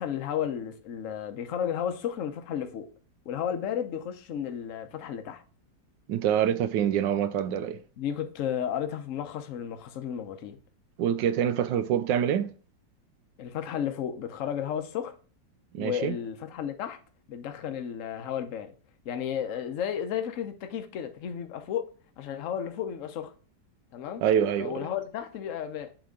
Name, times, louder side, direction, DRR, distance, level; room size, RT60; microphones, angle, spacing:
voice 1, 0.0-2.9 3.3-5.4 8.0-10.6 13.4-15.1 15.8-17.0 17.3-18.7 19.0-23.3 23.9-24.2 24.6-25.9, left 9 dB, 55° left, 1.0 m, -33 dB
voice 2, 6.1-7.8 11.0-12.5 15.7-16.2 24.2-24.8, right 9 dB, 85° right, 1.3 m, -26 dB
7.7 x 3.1 x 5.1 m
omnidirectional pair, 1.9 m